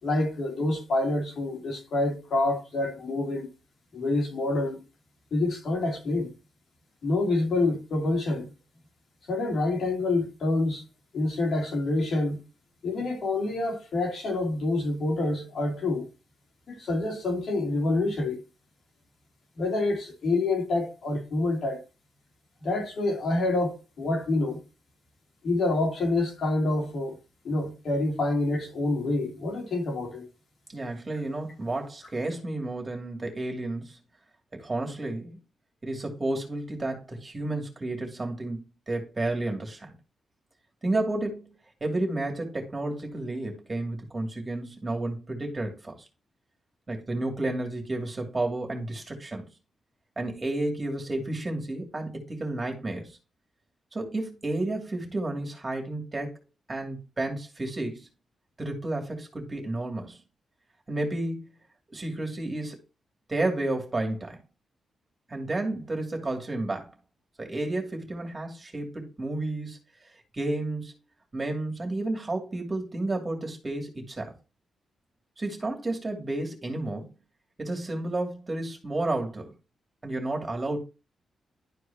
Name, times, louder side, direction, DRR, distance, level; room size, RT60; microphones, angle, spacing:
voice 1, 0.0-3.5 3.9-4.8 5.3-6.3 7.0-8.5 9.3-10.8 11.1-12.4 12.8-16.1 16.7-18.4 19.6-21.8 22.6-24.6 25.4-27.2 27.4-30.2, left 2 dB, 65° left, 3.1 m, -27 dB
voice 2, 30.7-34.0 34.5-35.4 35.8-39.9 40.8-41.6 41.8-46.1 46.9-49.5 50.2-53.2 53.9-56.4 56.7-58.1 58.6-60.2 60.9-61.5 61.9-62.8 63.3-64.4 65.3-66.9 67.4-69.8 70.3-70.9 71.3-74.3 75.4-77.1 77.6-79.5 80.0-80.8, right 2 dB, 30° right, 2.7 m, -31 dB
11.5 x 4.7 x 2.9 m
cardioid pair, 75°, 0 cm